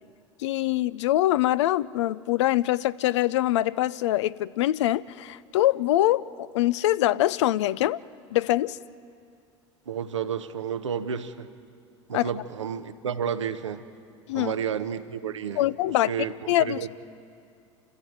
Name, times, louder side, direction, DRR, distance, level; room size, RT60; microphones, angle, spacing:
voice 1, 0.4-8.0 8.3-8.8 12.1-12.3 14.3-14.5 15.6-16.1 16.5-16.9, left 14 dB, 75° left, 18 dB, 0.5 m, -24 dB
voice 2, 9.9-11.5 12.1-13.8 14.3-16.9, right 7 dB, 90° right, 9 dB, 0.9 m, -31 dB
27.5 x 14.0 x 9.3 m, 2.4 s
hypercardioid pair, 75°, 15 cm